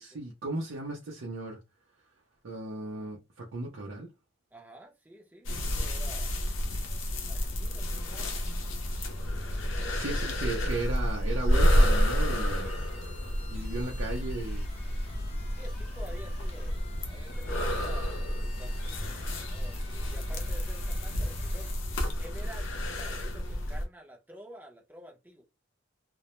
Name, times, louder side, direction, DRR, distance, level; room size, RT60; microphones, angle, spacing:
voice 1, 0.0-1.6 2.4-4.1 9.9-12.7 13.5-14.6, right 2 dB, 75° right, 0.6 m, -36 dB
voice 2, 4.5-6.4 7.3-8.3 9.8-10.5 15.6-19.1 19.5-21.8 22.2-22.7 23.0-25.4, equal, 10° right, 0.6 m, -50 dB
sound 1, 5.5-23.9, equal, 75° left, 0.6 m, -30 dB
sound 2, 11.6-21.7, left 3 dB, 30° left, 0.7 m, -52 dB
2.2 x 2.0 x 2.8 m
head